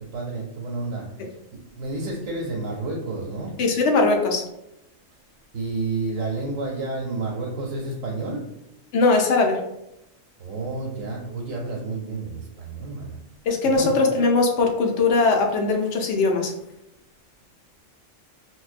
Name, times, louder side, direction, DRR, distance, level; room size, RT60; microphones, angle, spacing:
voice 1, 0.1-3.6 5.5-8.4 10.4-13.2 13.6-13.9, right 3 dB, 90° right, -2 dB, 1.0 m, -30 dB
voice 2, 3.6-4.4 8.9-9.6 13.5-16.5, left 3 dB, 70° left, 2 dB, 0.8 m, -20 dB
4.4 x 2.1 x 2.4 m, 0.86 s
omnidirectional pair, 1.3 m